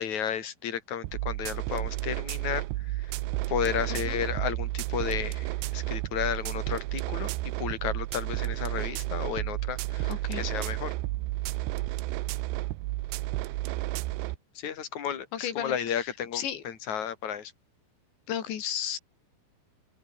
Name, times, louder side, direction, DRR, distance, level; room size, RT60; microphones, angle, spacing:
voice 1, 0.0-3.1 3.5-10.9 14.5-17.5, left 8 dB, 40° left, 4.1 m, -33 dB
sound 1, 1.0-14.4, right 18 dB, 75° right, 2.7 m, -32 dB
voice 2, 10.0-10.5 15.3-16.1 16.3-16.6 18.3-19.0, left 10 dB, 70° left, 4.7 m, -34 dB
open air
omnidirectional pair, 5.5 m